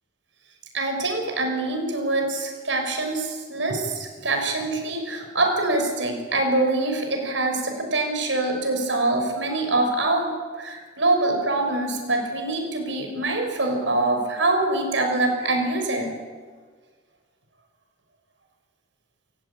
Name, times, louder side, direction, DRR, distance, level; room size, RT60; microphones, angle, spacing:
voice 1, 0.7-16.2, right 2 dB, 85° right, 3 dB, 6.4 m, -24 dB
28.5 x 16.0 x 8.9 m, 1.5 s
head